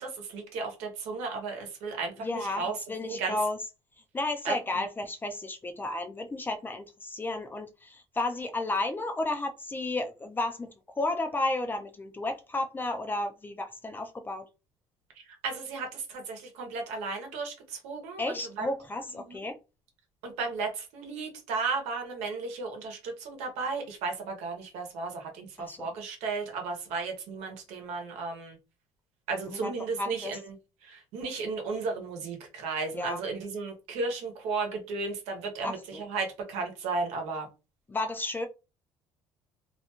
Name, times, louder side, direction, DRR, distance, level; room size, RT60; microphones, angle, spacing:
voice 1, 0.0-2.8 3.1-3.4 4.4-4.8 15.3-18.7 19.1-19.4 20.2-28.6 29.3-30.6 30.8-37.5, right 4 dB, 85° right, 0.9 m, -34 dB
voice 2, 2.2-3.6 4.1-10.7 11.0-14.5 18.2-19.6 25.6-25.9 29.5-29.7 30.0-30.4 32.9-33.2 35.6-36.0 37.9-38.5, left 2 dB, 20° left, 0.4 m, -32 dB
2.5 x 2.3 x 2.8 m
cardioid pair, 105°, 11 cm